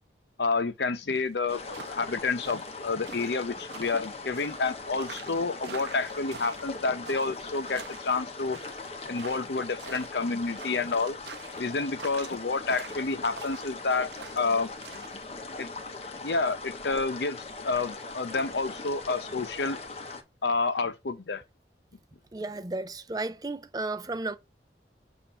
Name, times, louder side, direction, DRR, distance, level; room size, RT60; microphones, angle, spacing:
voice 1, 0.4-8.6 9.1-11.2 11.6-14.7 15.6-15.7 16.2-19.8 20.4-21.4, left 4 dB, 75° left, 0.7 m, -29 dB
sound 1, 1.1-15.2, right 6 dB, 75° right, 0.7 m, -47 dB
sound 2, 1.5-20.2, left 3 dB, 35° left, 0.8 m, -40 dB
voice 2, 22.3-24.3, right 2 dB, 20° right, 0.5 m, -33 dB
7.2 x 2.6 x 5.6 m
head